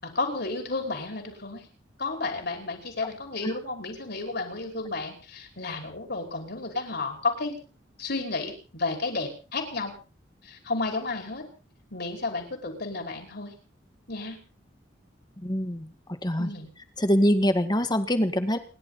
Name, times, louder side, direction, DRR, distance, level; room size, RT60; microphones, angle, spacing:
voice 1, 0.0-1.7 2.0-7.6 8.0-9.9 10.4-11.4 11.9-13.5 14.1-14.4 16.4-16.7, left 3 dB, 60° left, 3 dB, 5.2 m, -32 dB
voice 2, 15.4-15.9 16.2-16.5 17.0-18.6, equal, 25° left, 9 dB, 1.8 m, -24 dB
29.0 x 11.5 x 4.1 m, 0.37 s
head